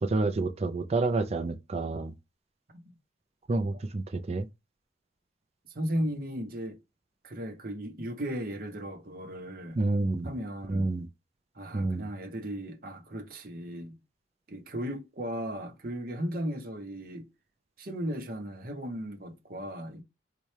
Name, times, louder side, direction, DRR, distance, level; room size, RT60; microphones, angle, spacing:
voice 1, 0.0-2.1 3.5-4.5 9.8-10.3 10.7-11.1 11.7-12.0, right 2 dB, 35° right, 0.4 m, -29 dB
voice 2, 5.7-6.8 7.2-9.8 10.2-10.9 11.5-14.0 14.5-17.3 17.8-20.0, equal, 50° right, 0.8 m, -36 dB
4.1 x 2.4 x 3.2 m
head